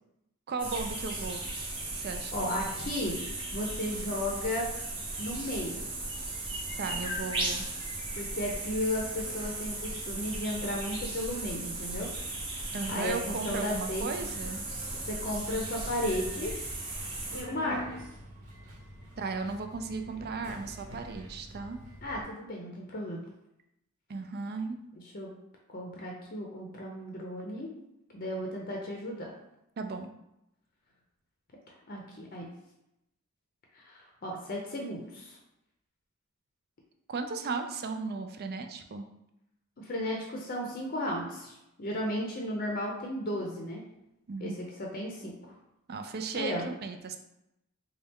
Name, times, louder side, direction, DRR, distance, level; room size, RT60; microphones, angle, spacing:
voice 1, 0.5-1.4 1.9-2.6 6.8-7.7 12.7-14.7 19.2-21.8 24.1-24.8 29.8-30.1 37.1-39.1 44.3-44.6 45.9-47.2, right 4 dB, 45° right, 6 dB, 0.4 m, -36 dB
sound 1, 0.6-17.4, right 2 dB, 25° right, 0.8 m, -36 dB
voice 2, 2.3-3.2 3.5-4.7 5.2-5.9 8.1-12.1 12.9-14.1 15.1-16.5 17.3-18.0 22.0-23.2 25.1-25.3 25.7-27.7 28.1-29.3 31.9-32.5 33.7-35.4 39.8-43.8 44.4-44.5 44.8-45.3 46.3-46.7, left 1 dB, 40° left, 0 dB, 0.6 m, -34 dB
Subway metro underground, 14.1-22.2, left 1 dB, 75° right, 1.2 m, -46 dB
4.1 x 2.3 x 3.5 m, 0.85 s
head